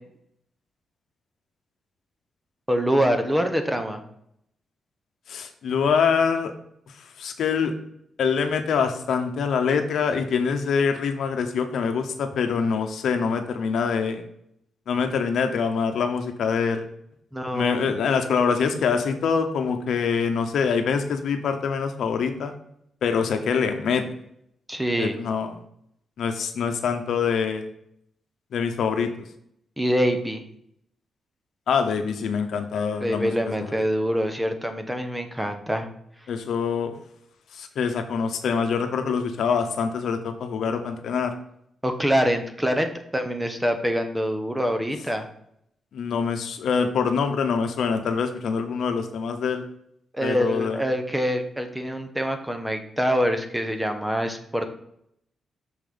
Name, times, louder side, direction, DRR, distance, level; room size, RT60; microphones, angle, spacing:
voice 1, 2.7-4.0 17.3-17.9 24.7-25.2 29.8-30.4 33.0-35.9 41.8-45.2 50.1-54.7, equal, 5° right, 6 dB, 0.9 m, -25 dB
voice 2, 5.3-6.5 7.2-7.7 8.2-14.2 14.9-16.8 17.5-22.5 23.0-24.0 25.0-25.6 26.2-27.7 28.5-29.1 31.7-33.3 33.6-33.7 36.3-36.9 37.5-41.3 45.9-49.6 50.2-50.8, left 6 dB, 80° left, 6 dB, 0.9 m, -24 dB
6.4 x 5.2 x 3.8 m, 0.72 s
cardioid pair, 105°, 0 cm